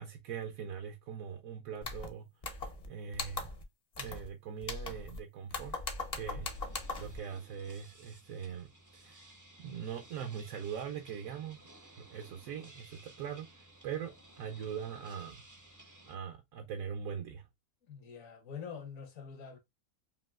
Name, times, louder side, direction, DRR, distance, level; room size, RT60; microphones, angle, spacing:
voice 1, 0.0-2.3 2.6-3.5 4.0-5.8 6.1-6.5 6.9-9.3 9.6-11.6 11.9-15.4 16.1-17.5, right 7 dB, 75° right, 1.0 m, -42 dB
sound 1, 1.8-2.1 2.4-2.9 3.1-3.6 4.0-4.3 4.6-5.2 5.5-7.2, left 3 dB, 40° left, 0.6 m, -39 dB
voice 2, 6.3-6.8 17.9-19.6, left 6 dB, 70° left, 1.3 m, -46 dB
sound 2, 6.4-16.2, right 1 dB, 25° right, 0.4 m, -57 dB
5.3 x 2.7 x 2.3 m
omnidirectional pair, 1.5 m